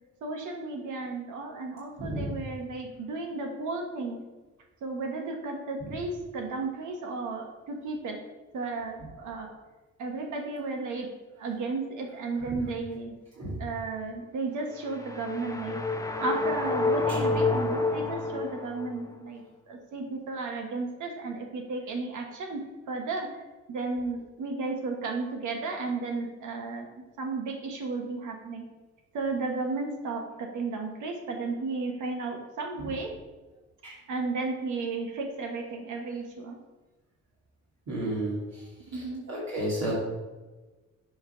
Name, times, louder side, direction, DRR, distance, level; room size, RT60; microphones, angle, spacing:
voice 1, 0.2-4.2 4.8-8.2 8.5-9.5 10.0-11.1 11.4-13.1 13.6-15.8 16.2-23.4 23.7-26.9 27.2-28.6 29.1-33.1 34.1-36.6 38.9-39.2, right 3 dB, 80° right, 2 dB, 1.3 m, -34 dB
voice 2, 2.0-2.3 13.4-13.6 17.1-17.2 33.8-33.9 37.9-38.4 39.3-39.9, right 1 dB, 60° right, -7 dB, 2.5 m, -31 dB
sound 1, 14.7-19.1, left 3 dB, 10° left, 0.6 m, -29 dB
7.7 x 3.5 x 5.7 m, 1.2 s
cardioid pair, 90°, 30 cm